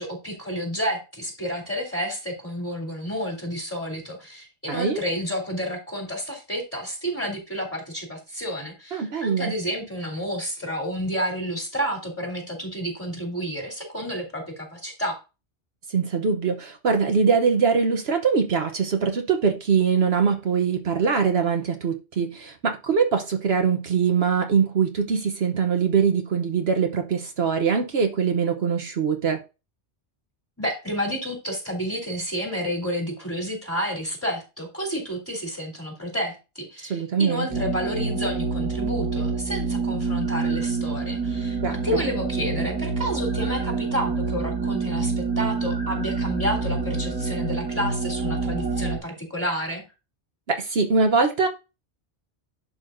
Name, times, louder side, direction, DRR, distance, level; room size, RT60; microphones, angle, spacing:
voice 1, 0.0-15.2 30.6-49.8, equal, 10° left, 3.4 m, -30 dB
voice 2, 4.7-5.0 8.9-9.5 15.9-29.4 36.9-37.5 41.6-41.7 50.5-51.5, right 6 dB, 65° right, 1.1 m, -22 dB
sound 1, 37.5-49.0, right 4 dB, 10° right, 1.4 m, -27 dB
11.0 x 5.7 x 2.6 m
omnidirectional pair, 1.1 m